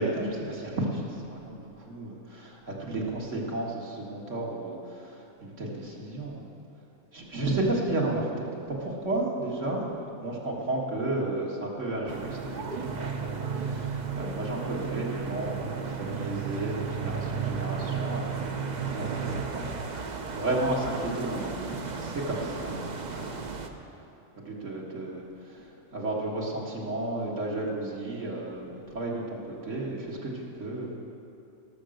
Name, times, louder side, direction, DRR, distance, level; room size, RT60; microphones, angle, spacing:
voice 1, 0.0-6.5 7.1-9.9 10.2-22.8 23.1-23.4 24.4-25.7 25.9-30.9, right 2 dB, 65° right, -3 dB, 2.2 m, -33 dB
sound 1, 12.1-23.7, right 5 dB, 40° right, 0.8 m, -34 dB
17.5 x 7.1 x 6.5 m, 2.8 s
omnidirectional pair, 1.4 m